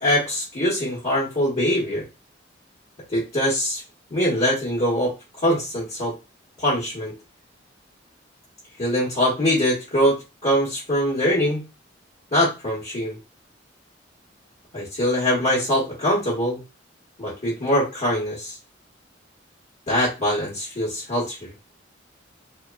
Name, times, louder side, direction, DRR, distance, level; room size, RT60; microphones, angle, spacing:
voice 1, 0.0-2.0 3.1-3.8 4.1-5.1 5.4-6.1 6.6-7.1 8.8-11.6 12.3-13.2 14.7-16.6 17.2-18.6 19.9-21.5, equal, 40° left, -6 dB, 1.0 m, -23 dB
3.0 x 2.0 x 2.2 m, 0.27 s
head